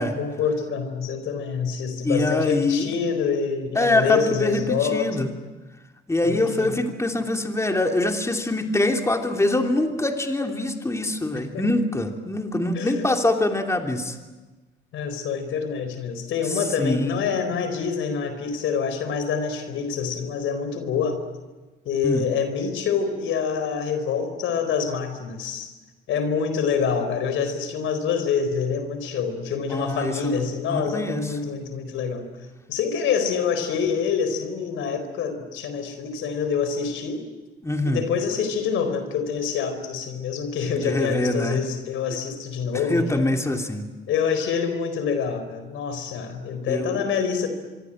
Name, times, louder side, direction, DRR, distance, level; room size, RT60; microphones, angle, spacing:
voice 1, 0.0-5.3 6.2-6.7 11.5-11.7 12.7-13.1 14.9-21.2 21.8-25.7 26.1-32.3 32.7-37.3 37.8-43.2 44.1-47.5, left 6 dB, 85° left, 9 dB, 4.4 m, -26 dB
voice 2, 2.0-2.9 3.7-5.3 6.1-14.2 16.5-17.2 22.0-22.2 29.7-31.3 37.6-38.0 40.7-41.6 42.7-43.9 46.7-47.1, left 2 dB, 15° left, 3 dB, 2.9 m, -24 dB
25.0 x 24.5 x 9.0 m, 1.2 s
cardioid pair, 90°, 20 cm